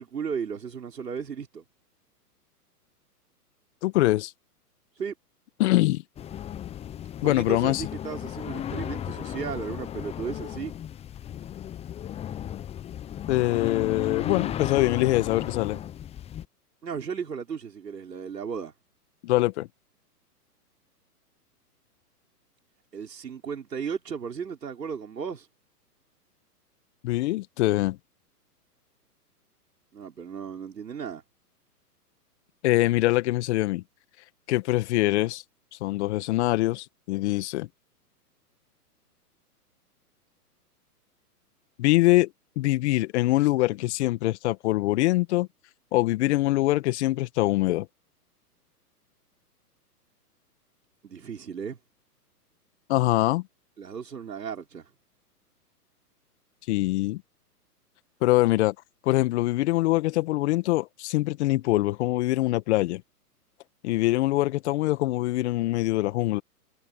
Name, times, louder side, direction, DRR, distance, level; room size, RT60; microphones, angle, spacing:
voice 1, 0.0-1.6 5.0-5.1 7.2-10.7 16.8-18.7 22.9-25.5 29.9-31.2 51.0-51.8 53.8-54.9, right 6 dB, 85° right, 5.8 m, -35 dB
voice 2, 3.8-4.3 5.6-6.0 7.2-7.9 13.3-15.8 19.2-19.7 27.0-28.0 32.6-33.8 34.5-35.4 35.8-37.7 41.8-42.3 42.6-45.5 45.9-47.9 52.9-53.4 56.7-57.2 58.2-58.7 59.0-63.0 63.8-66.4, left 18 dB, 45° left, 1.8 m, -23 dB
sound 1, 6.2-16.5, left 10 dB, 15° left, 1.0 m, -35 dB
hypercardioid pair, 130°, 47 cm